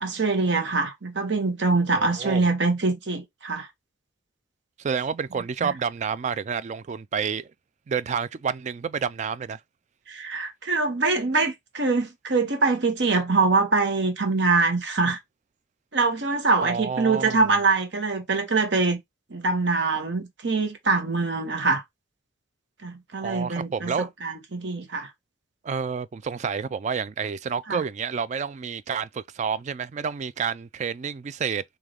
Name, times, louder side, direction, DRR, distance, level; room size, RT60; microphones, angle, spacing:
voice 1, 0.0-3.7 5.6-5.7 10.1-15.2 15.9-19.0 19.3-21.8 22.8-23.9 24.2-25.1 27.7-27.8, right 3 dB, 60° right, 1.1 m, -24 dB
voice 2, 2.0-2.5 4.8-7.5 7.9-9.6 16.6-17.5 23.2-24.1 25.6-31.6, right 6 dB, 40° right, 0.3 m, -29 dB
3.8 x 3.2 x 3.4 m
head